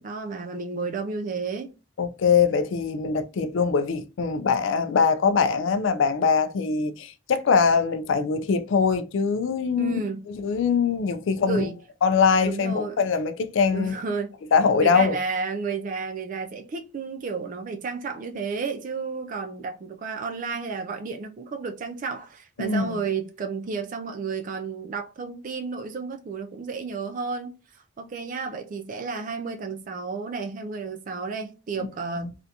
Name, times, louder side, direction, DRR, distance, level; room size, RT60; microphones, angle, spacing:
voice 1, 0.0-1.7 3.3-3.5 9.8-10.2 11.4-11.8 12.4-13.0 13.7-14.4 14.8-32.4, right 4 dB, 40° right, 0.3 m, -32 dB
voice 2, 2.0-10.0 10.3-11.6 12.0-13.9 14.5-15.2 22.6-23.0, left 5 dB, 65° left, 0.3 m, -22 dB
3.3 x 2.5 x 2.7 m
head